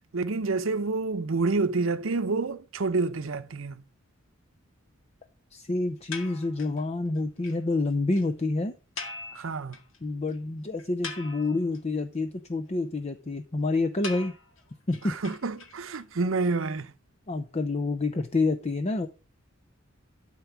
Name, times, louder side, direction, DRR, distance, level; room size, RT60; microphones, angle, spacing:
voice 1, 0.1-3.8 9.3-9.8 15.0-16.9, right 3 dB, 75° right, 0.7 m, -28 dB
voice 2, 5.5-8.7 10.0-14.3 14.9-15.2 17.3-19.1, left 3 dB, 30° left, 0.6 m, -28 dB
sound 1, 6.1-6.8 7.2-7.3 7.4-7.6 7.8-7.9 8.1-8.2 9.0-10.0 10.3-10.4 10.8-11.8 14.0-16.0, left 4 dB, 70° left, 2.1 m, -40 dB
12.5 x 4.7 x 7.1 m
head